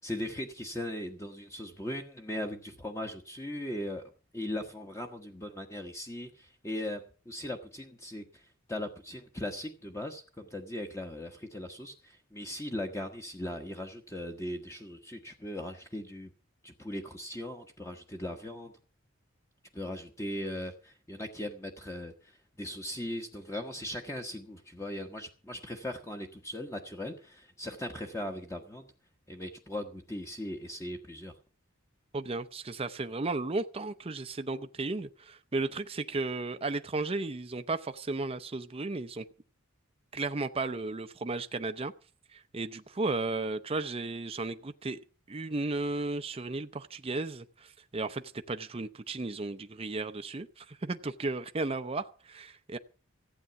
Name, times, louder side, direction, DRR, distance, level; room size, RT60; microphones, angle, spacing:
voice 1, 0.0-8.4 8.7-16.3 16.6-18.7 19.7-28.9 29.3-31.3, left 1 dB, 15° left, 1.2 m, -39 dB
voice 2, 32.1-39.3 40.1-41.9 42.3-45.0 45.3-52.8, right 3 dB, 30° right, 0.6 m, -34 dB
15.0 x 9.0 x 6.9 m
head